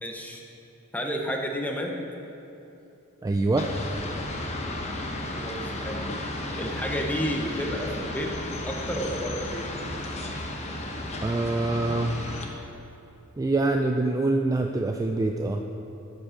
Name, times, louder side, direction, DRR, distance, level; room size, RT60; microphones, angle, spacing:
voice 1, 0.0-0.4 0.9-2.0 5.4-6.0 6.6-8.3 8.7-9.6, equal, 5° left, 1 dB, 0.8 m, -31 dB
voice 2, 3.2-3.7 11.2-12.2 13.4-15.6, right 2 dB, 15° right, 4 dB, 0.3 m, -25 dB
sound 1, 3.6-12.5, left 1 dB, 30° left, 0.9 m, -33 dB
13.0 x 5.4 x 5.0 m, 2.9 s
head